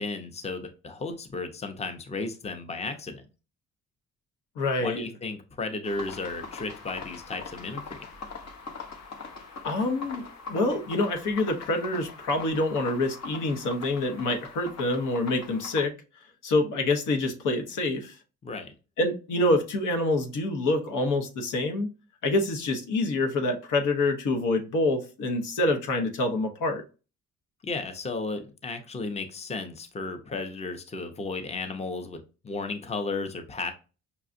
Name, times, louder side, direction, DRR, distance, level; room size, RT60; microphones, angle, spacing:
voice 1, 0.0-3.2 4.8-8.0 18.4-18.7 27.6-32.2 32.4-33.7, left 3 dB, 20° left, 7 dB, 0.6 m, -34 dB
voice 2, 4.6-5.0 9.6-15.9 16.4-18.2 19.0-21.9 22.2-26.8, left 2 dB, 85° left, 4 dB, 1.0 m, -26 dB
sound 1, 5.8-15.9, left 4 dB, 60° left, 0.8 m, -42 dB
5.6 x 2.3 x 2.5 m, 0.32 s
cardioid pair, 90°, 30 cm